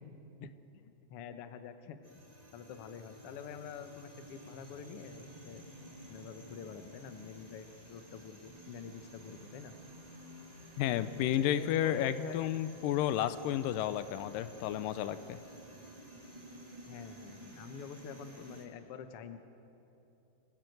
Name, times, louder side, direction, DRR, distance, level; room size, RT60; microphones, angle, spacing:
voice 1, 0.4-2.0 2.5-5.6 6.1-9.7 11.5-12.5 16.9-19.4, left 7 dB, 60° left, 8 dB, 1.6 m, -46 dB
sound 1, 2.0-18.6, equal, 10° right, 2.8 m, -52 dB
voice 2, 10.8-15.4, left 11 dB, 90° left, 13 dB, 2.4 m, -32 dB
26.5 x 15.5 x 7.9 m, 2.9 s
omnidirectional pair, 3.8 m